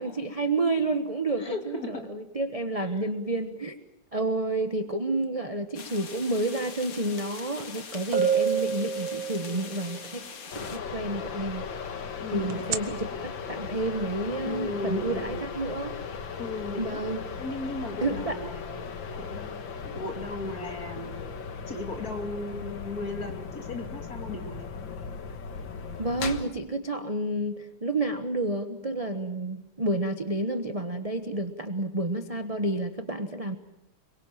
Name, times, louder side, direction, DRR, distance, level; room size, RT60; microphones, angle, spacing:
voice 1, 0.0-3.8 4.1-10.3 10.5-11.6 11.9-12.0 12.3-15.9 16.8-17.2 18.0-18.3 26.0-33.6, right 2 dB, 25° right, 7 dB, 0.9 m, -30 dB
voice 2, 1.4-2.1 2.8-3.1 12.2-12.6 14.4-15.5 16.4-17.0 17.4-18.9 19.2-19.5 19.8-21.1 21.7-24.9, left 2 dB, 40° left, 5 dB, 3.1 m, -36 dB
sound 1, 5.7-10.8, left 5 dB, 80° left, 3.2 m, -42 dB
sound 2, 7.6-7.7 8.1-9.9 12.5-12.8, right 7 dB, 65° right, 2.0 m, -27 dB
sound 3, 10.5-26.5, left 5 dB, 60° left, 2.2 m, -37 dB
25.5 x 23.5 x 7.5 m, 0.86 s
omnidirectional pair, 2.4 m